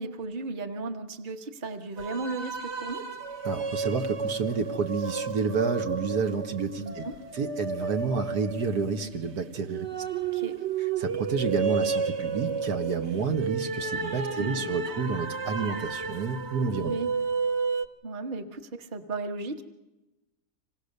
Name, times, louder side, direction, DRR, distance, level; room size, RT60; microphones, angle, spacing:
voice 1, 0.0-3.0 6.8-7.1 10.2-10.5 14.4-14.7 16.7-17.1 18.0-19.6, right 3 dB, 35° right, 6 dB, 1.4 m, -35 dB
sound 1, 2.0-17.9, right 5 dB, 50° right, 1.1 m, -32 dB
voice 2, 3.4-7.0 7.3-9.9 11.0-16.9, right 5 dB, 75° right, 5 dB, 1.8 m, -29 dB
26.0 x 19.0 x 6.7 m, 1.0 s
omnidirectional pair, 1.7 m